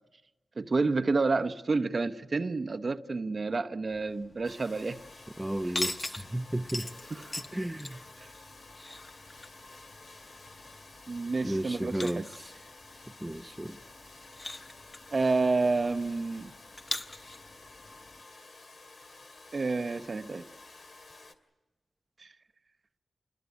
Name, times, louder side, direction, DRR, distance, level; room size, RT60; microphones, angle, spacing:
voice 1, 0.6-5.0 7.1-7.2 8.2-8.3 11.1-12.2 15.1-16.5 19.5-20.5, right 3 dB, 45° right, 0.9 m, -29 dB
sound 1, 3.9-18.2, left 2 dB, 30° left, 1.2 m, -43 dB
Domestic sounds home sounds, 4.4-21.3, left 3 dB, 60° left, 2.5 m, -52 dB
voice 2, 5.4-6.9 7.5-8.0 11.4-12.5 13.2-13.8, right 1 dB, 10° right, 0.8 m, -33 dB
27.0 x 21.0 x 8.3 m
cardioid pair, 70°, 0 cm